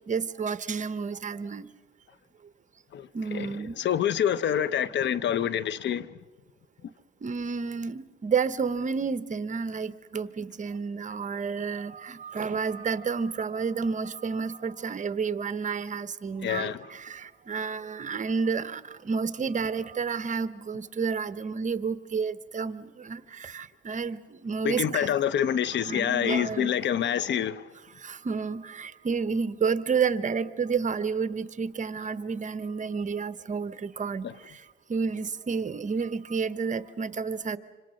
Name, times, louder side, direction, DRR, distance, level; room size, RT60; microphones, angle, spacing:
voice 1, 0.1-1.7 3.1-3.8 7.2-25.1 25.8-26.7 27.9-34.6 34.9-37.6, right 5 dB, 40° right, 1.0 m, -30 dB
voice 2, 2.9-3.5 3.8-6.1 16.4-16.8 24.6-27.7 34.2-34.3, left 9 dB, 65° left, 0.8 m, -27 dB
26.5 x 25.5 x 6.4 m
cardioid pair, 90°, 20 cm